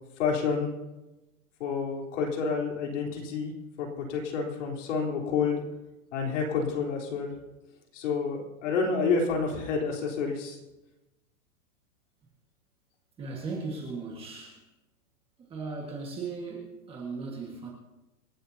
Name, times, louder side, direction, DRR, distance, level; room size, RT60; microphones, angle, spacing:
voice 1, 0.2-0.7 1.6-3.5 3.8-5.6 6.1-7.3 7.9-10.6, left 5 dB, 55° left, 0 dB, 3.9 m, -29 dB
voice 2, 13.2-14.6 15.4-17.7, right 4 dB, 15° right, -2 dB, 1.7 m, -37 dB
26.5 x 12.0 x 2.8 m, 1.0 s
supercardioid pair, 175°, 43 cm